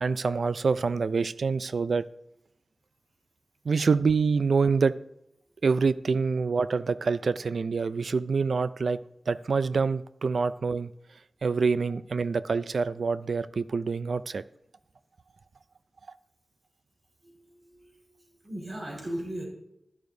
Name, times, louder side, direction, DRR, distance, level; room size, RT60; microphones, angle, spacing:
voice 1, 0.0-2.0 3.7-4.9 5.6-9.0 9.3-10.9 11.4-14.4, right 4 dB, 85° right, 15 dB, 0.3 m, -26 dB
voice 2, 17.2-19.5, right 1 dB, 50° right, -2 dB, 3.8 m, -38 dB
11.5 x 11.0 x 2.7 m, 0.80 s
wide cardioid pair, 65°, 0 cm